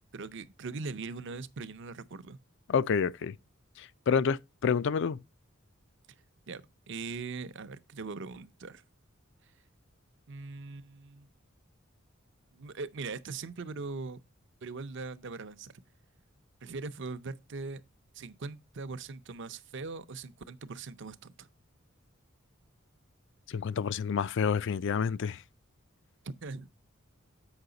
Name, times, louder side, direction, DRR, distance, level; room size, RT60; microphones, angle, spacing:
voice 1, 0.1-2.4 6.5-8.8 10.3-11.3 12.5-14.2 14.6-15.7 16.6-17.8 18.1-21.5 26.2-26.7, right 4 dB, 60° right, 0.6 m, -41 dB
voice 2, 2.7-3.3 3.8-5.2 23.5-25.4, left 6 dB, 60° left, 0.4 m, -29 dB
8.0 x 5.6 x 3.9 m
head